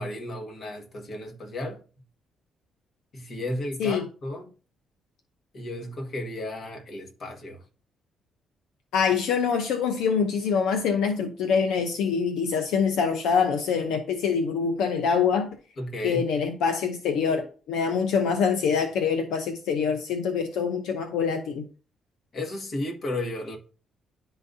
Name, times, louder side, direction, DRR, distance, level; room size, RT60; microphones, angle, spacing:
voice 1, 0.0-1.8 3.1-4.5 5.5-7.6 15.8-16.3 22.3-23.6, left 1 dB, 50° left, 1.6 m, -34 dB
voice 2, 8.9-15.6 16.0-21.7, left 6 dB, 85° left, 0.7 m, -25 dB
10.5 x 4.0 x 2.7 m
cardioid pair, 90°, 0 cm